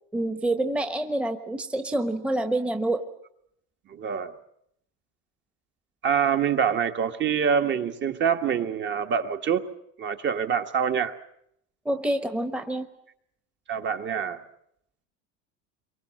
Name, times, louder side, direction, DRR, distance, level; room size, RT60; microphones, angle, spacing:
voice 1, 0.1-3.0 11.8-12.9, right 1 dB, 5° right, 1.1 m, -27 dB
voice 2, 3.9-4.3 6.0-9.6 10.0-11.1 13.7-14.4, right 7 dB, 35° right, 1.4 m, -25 dB
27.5 x 24.0 x 7.6 m
supercardioid pair, 135°, 34 cm